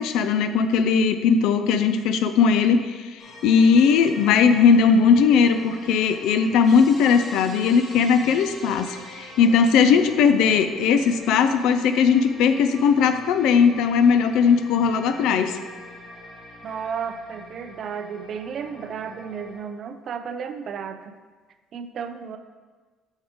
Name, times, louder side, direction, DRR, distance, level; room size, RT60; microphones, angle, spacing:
voice 1, 0.0-15.6, left 6 dB, 75° left, 9 dB, 0.4 m, -19 dB
sound 1, 3.2-19.6, left 2 dB, 35° left, 2.1 m, -43 dB
voice 2, 16.6-21.2 21.7-22.4, right 6 dB, 45° right, 9 dB, 0.5 m, -33 dB
6.9 x 6.3 x 3.6 m, 1.4 s
cardioid pair, 145°, 0 cm